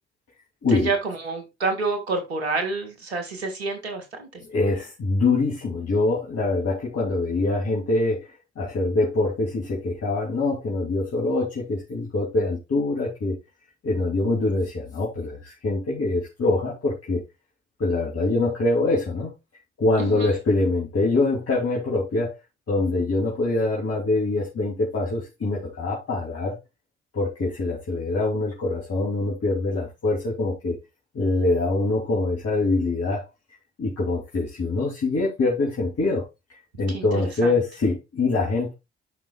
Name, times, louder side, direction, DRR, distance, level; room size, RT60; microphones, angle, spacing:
voice 1, 0.7-4.4 20.0-20.3 36.9-37.5, right 3 dB, 85° right, 1.6 m, -28 dB
voice 2, 4.5-13.4 13.8-17.2 17.8-19.3 19.8-22.3 22.7-26.6 27.1-30.8 31.1-33.3 33.8-36.2 36.8-38.7, left 2 dB, 50° left, 2.8 m, -24 dB
13.0 x 5.4 x 2.3 m
figure-of-eight pair, 40°, 31 cm